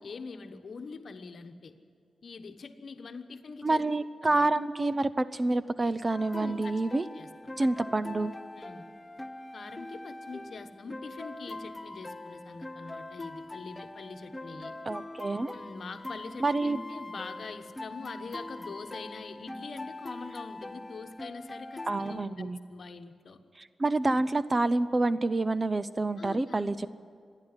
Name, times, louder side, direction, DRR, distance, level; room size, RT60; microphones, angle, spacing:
voice 1, 0.0-1.7 2.2-3.8 4.2-4.4 6.4-6.6 7.1-7.9 8.6-8.9 9.5-14.8 15.5-23.4 26.2-26.9, left 4 dB, 55° left, 8 dB, 1.2 m, -44 dB
voice 2, 3.6-7.1 7.6-8.3 14.9-15.5 16.4-16.8 21.9-22.6 23.6-26.9, right 2 dB, 25° right, 14 dB, 0.5 m, -28 dB
sound 1, 6.1-22.3, left 2 dB, 15° left, 0.8 m, -42 dB
26.0 x 10.5 x 9.8 m, 2.2 s
wide cardioid pair, 115°, 0 cm